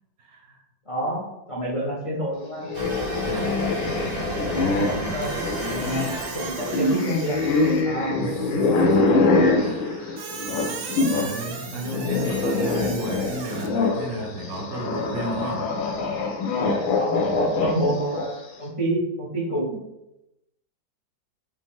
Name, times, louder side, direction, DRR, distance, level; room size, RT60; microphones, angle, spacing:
voice 1, 0.2-0.6 3.2-3.6 4.0-5.5 8.2-10.4 10.8-15.7, right 1 dB, 65° right, 1 dB, 1.0 m, -33 dB
voice 2, 0.9-2.7 5.0-5.3 6.3-7.4 7.8-8.2 17.0-19.8, right 1 dB, 60° left, -4 dB, 0.3 m, -28 dB
sound 1, 2.6-11.4 11.6-18.4, left 3 dB, 85° left, 1.5 m, -24 dB
sound 2, 2.7-7.5, right 2 dB, 30° right, 0.4 m, -33 dB
Squeak, 5.2-8.0 10.2-13.7, right 6 dB, 80° right, 1.4 m, -37 dB
4.9 x 2.7 x 3.6 m, 0.89 s
omnidirectional pair, 2.1 m